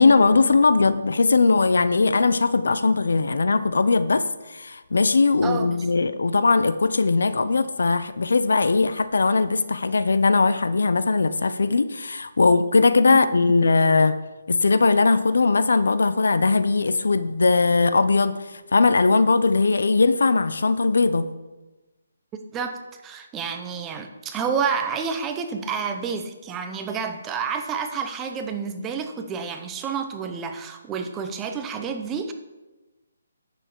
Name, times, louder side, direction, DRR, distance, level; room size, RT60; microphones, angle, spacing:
voice 1, 0.0-4.2 4.5-14.2 14.5-21.3, left 3 dB, 80° left, 13 dB, 0.7 m, -19 dB
voice 2, 5.4-5.7 13.1-13.2 22.5-22.8 23.0-32.3, right 6 dB, 15° right, 6 dB, 0.8 m, -29 dB
10.0 x 7.1 x 4.5 m, 1.1 s
hypercardioid pair, 160°, 0 cm